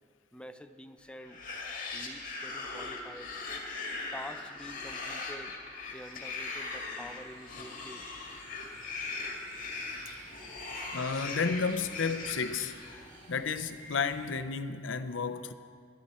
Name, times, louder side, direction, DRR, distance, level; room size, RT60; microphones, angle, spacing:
voice 1, 0.3-1.4 1.9-3.3 4.1-5.6 5.9-8.1, equal, 5° left, 0.6 m, -47 dB
sound 1, 1.2-13.2, left 3 dB, 45° left, 2.0 m, -40 dB
sound 2, 5.8-14.3, right 2 dB, 45° right, 2.8 m, -53 dB
voice 2, 10.9-12.8 13.3-15.5, left 5 dB, 80° left, 0.7 m, -32 dB
20.5 x 11.5 x 4.3 m
head